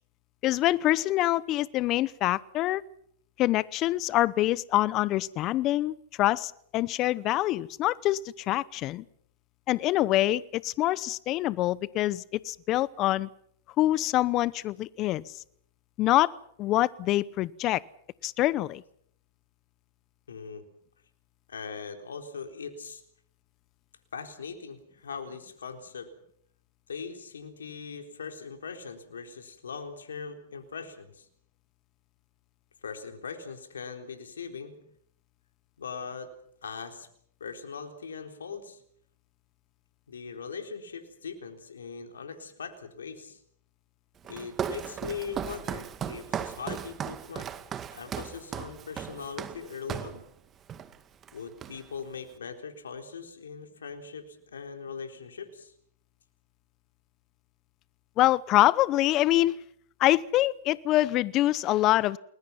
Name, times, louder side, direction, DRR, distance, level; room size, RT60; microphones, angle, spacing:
voice 1, 0.4-2.8 3.4-9.0 9.7-13.3 13.8-15.4 16.0-16.3 16.6-17.8 18.2-18.8 58.2-59.6 60.0-62.2, left 15 dB, 40° left, 20 dB, 0.8 m, -25 dB
voice 2, 20.3-20.6 21.5-23.0 24.1-26.1 26.9-31.3 32.8-34.8 35.8-36.3 36.6-37.1 37.4-38.8 40.1-43.4 44.3-47.5 47.9-50.2 51.3-55.7, left 5 dB, 85° left, 5 dB, 3.9 m, -40 dB
Walk footsteps, 44.2-50.2 50.7-51.0 51.2-52.0, right 8 dB, 25° right, 2.0 m, -36 dB
30.0 x 21.0 x 5.9 m, 0.69 s
hypercardioid pair, 110°, 0 cm